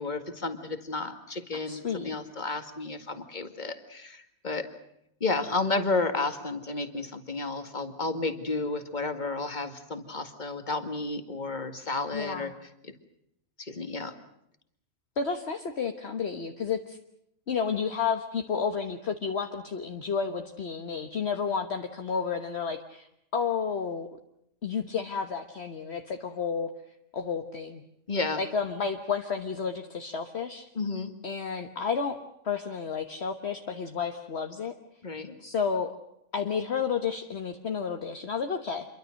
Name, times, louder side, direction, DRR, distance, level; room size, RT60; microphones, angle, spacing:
voice 1, 0.0-4.7 5.2-12.5 12.8-12.9 13.6-14.1 28.1-28.4 30.8-31.1 35.0-35.4, left 3 dB, 30° left, 7 dB, 2.1 m, -32 dB
voice 2, 1.7-2.1 12.1-12.6 15.2-17.0 17.5-23.1 23.3-24.1 24.6-26.7 27.1-27.8 28.4-30.7 31.2-34.7 35.4-36.0 36.3-38.9, left 6 dB, 50° left, 5 dB, 1.5 m, -31 dB
27.5 x 23.5 x 6.5 m, 0.77 s
omnidirectional pair, 1.5 m